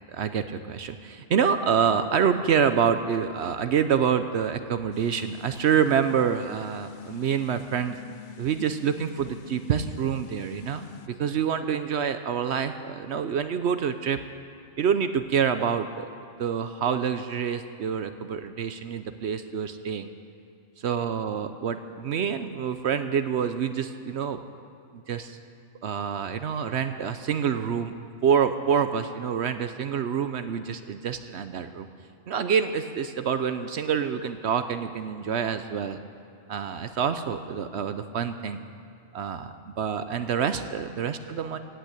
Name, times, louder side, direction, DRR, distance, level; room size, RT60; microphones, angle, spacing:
voice 1, 0.1-8.0 8.4-14.2 14.8-16.1 16.4-20.1 20.8-24.4 24.9-25.4 25.8-27.9 28.2-31.9 32.3-36.0 36.5-38.6 39.1-41.6, right 7 dB, 65° right, 10 dB, 0.9 m, -27 dB
sound 1, 4.9-11.1, left 6 dB, 65° left, 0.5 m, -44 dB
17.0 x 9.1 x 8.3 m, 2.5 s
omnidirectional pair, 1.3 m